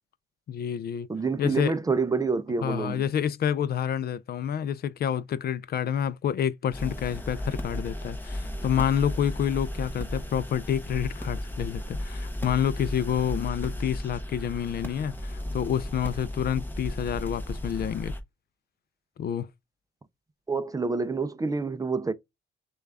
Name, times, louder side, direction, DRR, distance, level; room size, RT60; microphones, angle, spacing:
voice 1, 0.5-1.1 1.4-1.7 2.6-18.1 19.2-19.5, left 9 dB, 50° left, 0.4 m, -28 dB
voice 2, 1.1-3.0 20.5-22.1, right 4 dB, 20° right, 0.4 m, -27 dB
sound 1, 6.7-18.2, left 1 dB, 10° left, 0.8 m, -34 dB
6.5 x 2.3 x 2.3 m
cardioid pair, 90°, 20 cm